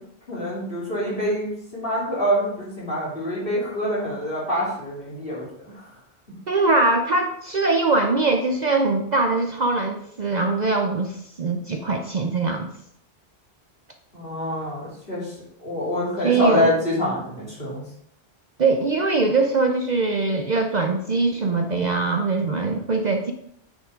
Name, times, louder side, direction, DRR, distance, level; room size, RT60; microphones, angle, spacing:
voice 1, 0.3-5.7 14.1-15.3 15.6-17.8, left 1 dB, 55° left, -6 dB, 3.5 m, -26 dB
voice 2, 6.5-12.7 16.2-16.7 18.6-23.3, right 3 dB, 50° right, 5 dB, 0.6 m, -22 dB
8.9 x 6.8 x 3.7 m, 0.70 s
omnidirectional pair, 1.1 m